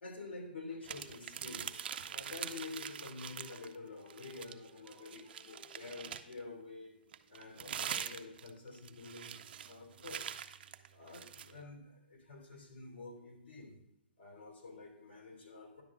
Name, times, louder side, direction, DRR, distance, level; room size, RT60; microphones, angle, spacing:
voice 1, 0.0-1.8 2.1-7.0 7.3-9.4 9.6-10.4 10.9-13.8 14.2-15.8, left 3 dB, 80° left, 1 dB, 3.0 m, -48 dB
sound 1, 0.8-3.8 4.1-6.4 7.1-11.5, right 9 dB, 60° right, 0.5 m, -44 dB
sound 2, 1.5-6.4, left 3 dB, 20° left, 1.8 m, -64 dB
10.5 x 3.6 x 7.2 m, 0.78 s
hypercardioid pair, 150°, 6 cm